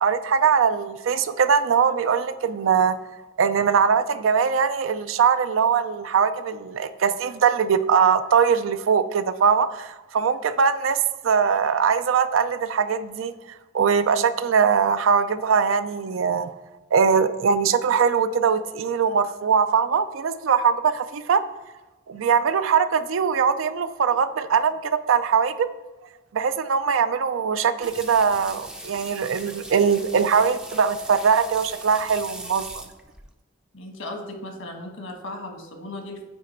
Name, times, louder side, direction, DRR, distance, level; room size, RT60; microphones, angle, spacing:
voice 1, 0.0-3.0 3.4-11.0 11.2-13.3 13.7-16.5 16.9-21.4 22.1-25.7 26.3-32.8, right 6 dB, 80° right, 12 dB, 0.4 m, -21 dB
sound 1, 27.8-33.3, right 1 dB, 5° right, 0.4 m, -40 dB
voice 2, 33.7-36.2, left 1 dB, 80° left, 3 dB, 1.3 m, -36 dB
8.9 x 3.2 x 4.3 m, 1.1 s
head